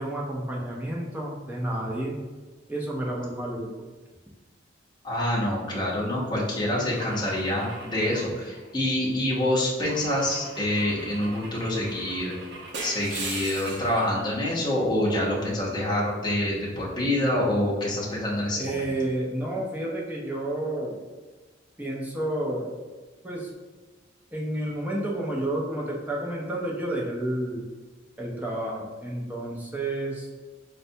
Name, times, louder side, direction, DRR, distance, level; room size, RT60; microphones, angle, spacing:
voice 1, 0.0-2.2 2.7-3.7 18.6-21.0 21.8-22.7 23.2-23.5 24.3-27.6 28.2-30.3, right 1 dB, 10° right, -3 dB, 0.5 m, -30 dB
voice 2, 5.0-12.3 12.8-18.9, left 1 dB, 25° left, -6 dB, 0.8 m, -26 dB
Car / Engine / Glass, 6.9-9.1 9.8-14.0, right 3 dB, 65° right, 0.6 m, -39 dB
3.9 x 2.2 x 2.7 m, 1.3 s
head